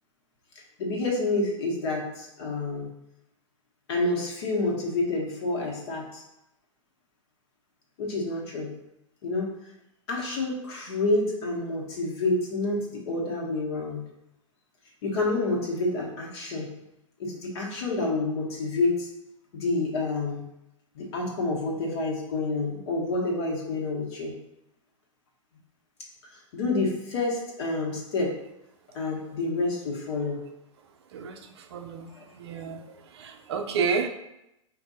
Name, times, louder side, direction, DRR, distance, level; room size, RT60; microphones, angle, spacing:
voice 1, 0.8-2.9 3.9-6.2 8.0-8.7 9.2-9.5 10.1-14.0 15.0-16.7 17.2-19.1 19.5-20.4 20.9-24.3 26.5-28.4 28.9-30.4 32.2-32.3, left 2 dB, 50° left, -2 dB, 1.4 m, -28 dB
voice 2, 31.7-32.1 32.4-32.9 33.1-34.1, right 5 dB, 55° right, 6 dB, 0.5 m, -29 dB
4.4 x 2.6 x 4.1 m, 0.86 s
figure-of-eight pair, 110°, 17 cm